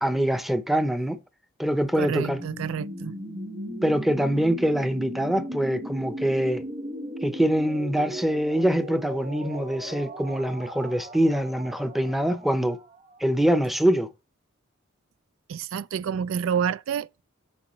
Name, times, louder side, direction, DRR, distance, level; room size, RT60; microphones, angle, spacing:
voice 1, 0.0-1.2 1.6-2.4 3.8-6.6 7.2-12.8 13.2-14.1, equal, ahead, 0.6 m, -24 dB
sound 1, 1.9-13.7, equal, 35° right, 1.5 m, -37 dB
voice 2, 2.0-3.1 15.5-17.2, right 7 dB, 70° right, 0.3 m, -29 dB
8.4 x 5.9 x 3.1 m
head